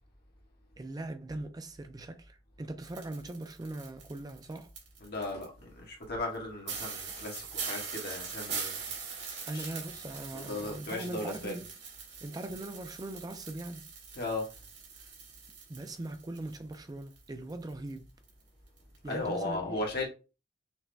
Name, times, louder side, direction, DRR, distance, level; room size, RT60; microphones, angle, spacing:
voice 1, 0.8-4.7 9.5-11.6 12.2-13.9 15.7-18.1 19.0-19.8, right 2 dB, 20° right, 0.4 m, -40 dB
sound 1, 2.8-5.5 6.0-6.1 6.3-6.4 6.7-16.8 17.0-18.0 18.3-18.4 18.8-19.0, right 6 dB, 65° right, 1.8 m, -42 dB
voice 2, 5.0-9.0 9.5-9.7 10.3-11.6 14.1-14.5 19.1-20.1, left 2 dB, 60° left, 1.4 m, -36 dB
5.9 x 2.1 x 3.3 m
head